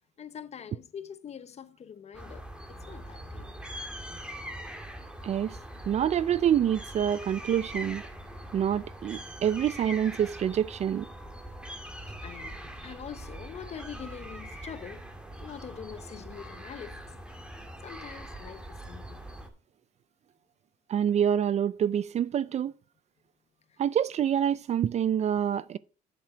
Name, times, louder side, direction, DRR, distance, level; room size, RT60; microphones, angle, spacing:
voice 1, 0.2-3.5 12.2-15.1 15.4-17.0 17.8-19.3 23.7-23.8, left 8 dB, 40° left, 0.8 m, -44 dB
sound 1, 2.1-19.5, right 1 dB, 5° right, 1.8 m, -42 dB
voice 2, 5.2-5.6 5.9-8.1 8.5-11.1 20.9-22.7 23.8-25.8, right 9 dB, 40° right, 0.4 m, -26 dB
7.6 x 7.4 x 5.0 m
cardioid pair, 110°, 17 cm